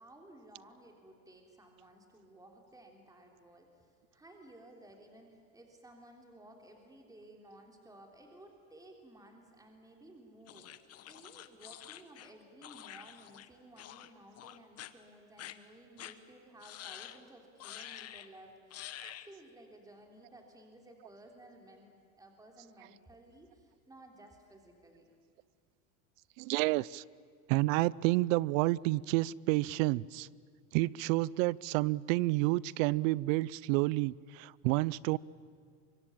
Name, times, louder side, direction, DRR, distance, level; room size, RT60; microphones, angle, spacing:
voice 1, 0.0-18.5 19.0-25.1, right 1 dB, 10° right, 3.3 m, -56 dB
sound 1, 10.5-13.5 13.8-14.1 14.4-14.9 15.4-15.5 16.0-16.1 16.6-17.2 17.6-18.3 18.7-19.3, left 12 dB, 35° left, 1.2 m, -48 dB
voice 2, 26.4-27.0 27.5-30.3 30.7-35.2, right 20 dB, 70° right, 0.6 m, -30 dB
25.0 x 22.0 x 8.7 m
supercardioid pair, 125°, 40 cm